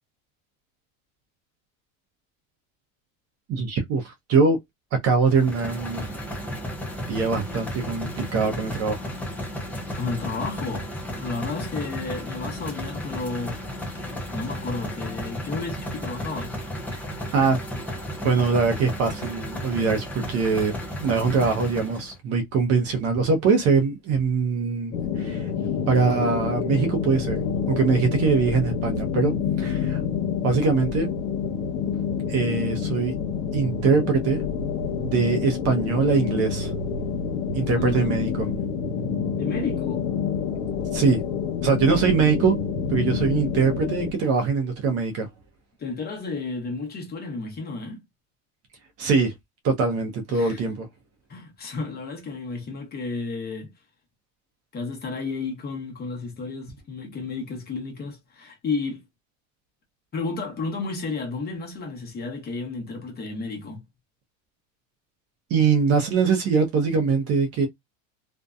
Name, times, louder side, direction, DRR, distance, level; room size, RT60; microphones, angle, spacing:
voice 1, 3.5-4.6 5.0-6.1 7.1-9.0 17.3-17.6 18.2-20.7 21.0-25.5 25.9-30.0 30.4-31.1 32.3-33.1 33.5-34.4 35.0-36.7 37.5-38.3 40.9-41.2 41.6-42.6 42.9-45.3 49.0-49.3 49.6-50.9 65.5-67.7, right 5 dB, 40° right, 0.6 m, -22 dB
sound 1, 5.3-22.2, equal, 5° left, 0.4 m, -33 dB
voice 2, 9.9-10.9 11.1-13.6 14.3-16.6 37.7-38.3 39.4-40.1 45.8-48.0 50.3-50.7 51.3-53.7 54.7-59.0 60.1-63.8, left 3 dB, 25° left, 0.8 m, -32 dB
sound 2, 24.9-44.1, left 6 dB, 70° left, 0.8 m, -28 dB
2.6 x 2.1 x 2.3 m
supercardioid pair, 130°, 40 cm